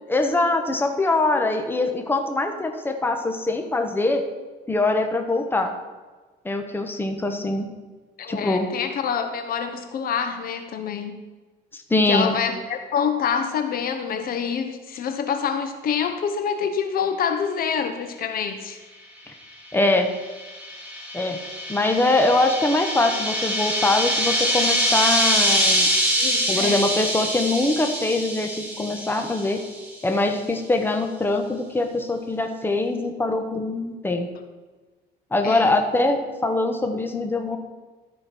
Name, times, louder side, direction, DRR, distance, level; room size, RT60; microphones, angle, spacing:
voice 1, 0.1-4.3 4.7-5.7 6.4-7.7 8.3-8.7 11.7-12.4 19.7-20.1 21.1-21.4 21.7-25.9 26.5-29.6 30.0-34.3 35.3-37.6, left 2 dB, 10° left, 5 dB, 1.2 m, -23 dB
voice 2, 8.2-11.2 12.1-18.8 26.2-26.9 35.4-35.7, left 7 dB, 60° left, 7 dB, 1.1 m, -26 dB
sound 1, 20.0-29.8, equal, 10° right, 3.8 m, -24 dB
13.0 x 5.4 x 6.0 m, 1.3 s
cardioid pair, 110°, 17 cm